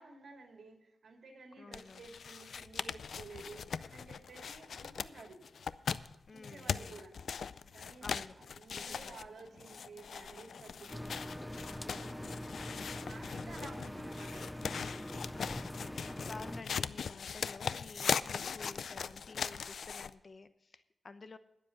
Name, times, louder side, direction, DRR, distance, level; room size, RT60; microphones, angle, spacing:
voice 1, 0.0-5.4 6.3-7.1 7.7-11.3 11.8-12.4 12.7-14.4, right 3 dB, 70° right, 2 dB, 3.1 m, -53 dB
voice 2, 1.6-2.2 6.3-7.0 8.0-8.4 8.7-9.2 15.3-21.4, left 3 dB, 45° left, 12 dB, 0.8 m, -52 dB
sound 1, 1.7-20.1, left 6 dB, 80° left, 0.4 m, -40 dB
sound 2, 5.2-5.5 6.1-19.3, right 1 dB, 40° right, 5.5 m, -63 dB
sound 3, 10.9-16.6, left 1 dB, 10° left, 0.4 m, -43 dB
20.5 x 7.5 x 4.0 m, 0.93 s
cardioid pair, 75°, 0 cm